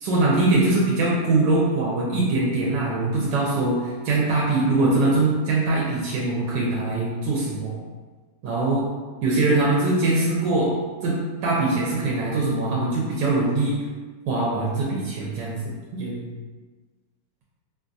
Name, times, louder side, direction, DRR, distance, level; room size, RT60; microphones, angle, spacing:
voice 1, 0.0-7.8 8.4-8.9 9.2-10.7 11.0-11.2 11.4-13.7 14.3-16.3, right 2 dB, 80° right, -4 dB, 1.3 m, -22 dB
4.4 x 2.3 x 2.6 m, 1.4 s
omnidirectional pair, 1.9 m